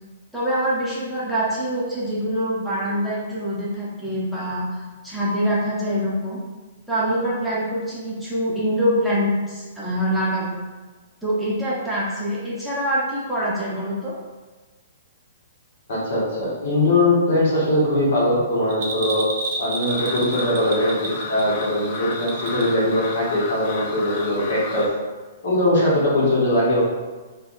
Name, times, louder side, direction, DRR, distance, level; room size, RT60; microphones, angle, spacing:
voice 1, 0.3-6.4 6.9-10.6 11.2-14.2, equal, ahead, -9 dB, 0.8 m, -24 dB
voice 2, 15.9-19.3 19.6-24.9 25.4-26.8, left 1 dB, 65° left, -6 dB, 1.2 m, -21 dB
Bell, 18.7-22.8 23.1-23.2, right 2 dB, 55° right, 0.6 m, -30 dB
sound 1, 19.9-24.9, left 3 dB, 50° left, 0.4 m, -33 dB
3.3 x 2.3 x 2.6 m, 1.3 s
hypercardioid pair, 130°, 0 cm